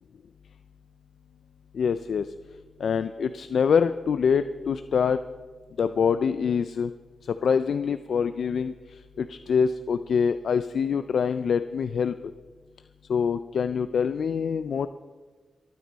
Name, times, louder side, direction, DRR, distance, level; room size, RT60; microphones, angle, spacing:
voice 1, 1.7-2.2 2.8-5.2 5.8-6.9 7.3-8.7 9.2-12.1 13.1-14.9, left 6 dB, 80° left, 11 dB, 0.4 m, -25 dB
27.5 x 9.4 x 4.1 m, 1.4 s
wide cardioid pair, 95°, 0 cm